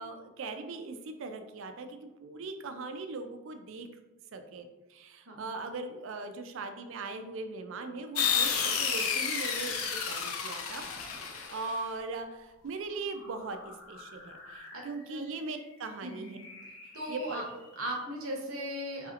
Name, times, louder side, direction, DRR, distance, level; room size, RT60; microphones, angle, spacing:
voice 1, 0.0-3.9 4.3-10.8 11.5-16.4 17.1-17.6, right 3 dB, 65° right, 7 dB, 0.4 m, -40 dB
sound 1, 8.2-11.8, left 7 dB, 85° left, 0.5 m, -31 dB
sound 2, 10.6-18.1, left 2 dB, 65° left, 0.8 m, -53 dB
voice 2, 16.0-16.4 16.9-17.4 17.8-19.1, equal, 85° right, 0 dB, 0.8 m, -37 dB
4.0 x 2.8 x 2.4 m, 1.0 s
head